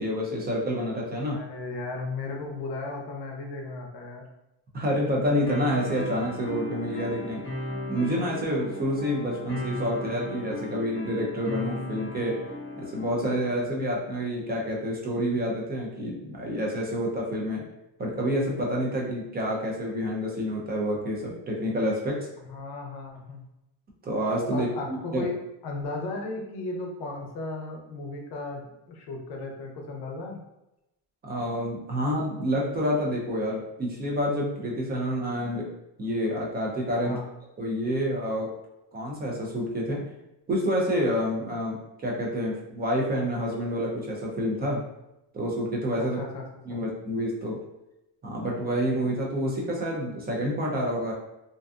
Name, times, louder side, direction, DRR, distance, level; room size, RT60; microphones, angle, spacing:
voice 1, 0.0-1.4 4.7-7.4 7.9-12.4 12.8-17.6 18.0-22.3 24.0-25.2 31.2-35.6 36.0-37.2 37.6-38.5 38.9-40.1 40.5-44.8 45.3-46.2 46.7-47.6 48.2-51.1, equal, 25° right, -2 dB, 0.3 m, -28 dB
voice 2, 1.3-4.2 22.4-23.4 24.5-30.4 37.0-37.2 46.0-46.8, left 3 dB, 65° left, 1 dB, 0.6 m, -35 dB
sound 1, 5.5-13.5, left 1 dB, 25° left, 0.6 m, -36 dB
2.5 x 2.2 x 2.4 m, 0.90 s
cardioid pair, 170°, 44 cm